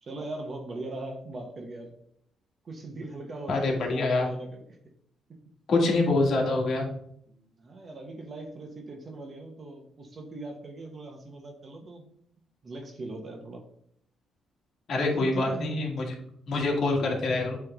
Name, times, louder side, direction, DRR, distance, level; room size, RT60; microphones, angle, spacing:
voice 1, 0.0-1.9 2.6-4.6 5.3-5.4 7.3-12.1 12.6-13.6 15.1-15.7, right 2 dB, 40° right, 2 dB, 1.1 m, -40 dB
voice 2, 3.5-4.3 5.7-6.9 14.9-16.1 16.5-17.6, left 2 dB, 60° left, 0 dB, 1.7 m, -25 dB
7.9 x 3.5 x 3.6 m, 0.69 s
cardioid pair, 90°, 0 cm